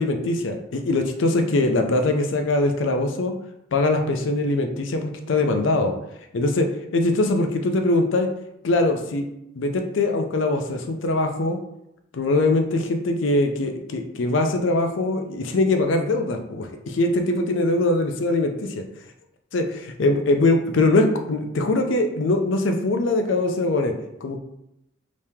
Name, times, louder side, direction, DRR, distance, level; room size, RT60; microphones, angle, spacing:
voice 1, 0.0-3.3 3.7-5.9 6.3-8.3 8.6-9.2 9.6-11.6 12.1-18.8 19.5-23.9 24.2-24.4, left 2 dB, 70° left, 5 dB, 0.5 m, -22 dB
3.0 x 2.8 x 3.4 m, 0.83 s
head